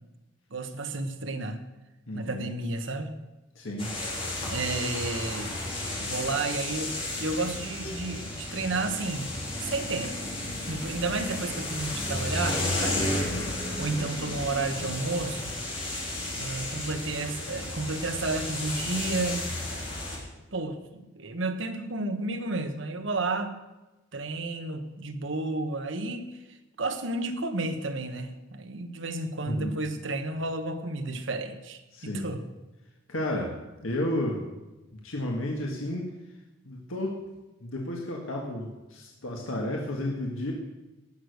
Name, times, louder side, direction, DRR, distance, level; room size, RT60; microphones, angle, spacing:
voice 1, 0.5-1.6 2.1-3.1 4.4-5.6 6.0-9.3 9.6-10.1 10.7-13.1 13.8-15.6 16.3-19.8 20.5-23.5 24.1-26.4 26.8-32.4, right 2 dB, 65° right, 8 dB, 1.2 m, -32 dB
voice 2, 2.1-2.5 3.5-3.9 29.5-29.7 31.9-32.2 33.1-33.5 33.8-34.5 35.0-36.1 36.6-37.2 37.6-40.5, left 1 dB, 85° left, 0 dB, 1.7 m, -32 dB
sound 1, 3.8-20.2, left 1 dB, 30° left, 3.4 m, -33 dB
18.0 x 6.6 x 6.5 m, 1.1 s
head